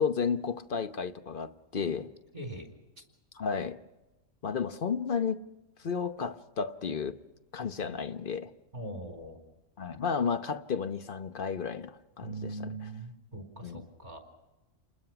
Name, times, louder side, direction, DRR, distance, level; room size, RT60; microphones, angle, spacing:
voice 1, 0.0-2.1 3.3-3.8 4.4-5.4 5.8-7.2 7.5-8.5 9.8-12.8 13.6-13.9, left 6 dB, 45° left, 1.0 m, -32 dB
voice 2, 2.3-2.7 8.7-9.4 12.2-14.2, right 2 dB, 30° right, 3.9 m, -41 dB
28.5 x 21.0 x 5.9 m
omnidirectional pair, 1.4 m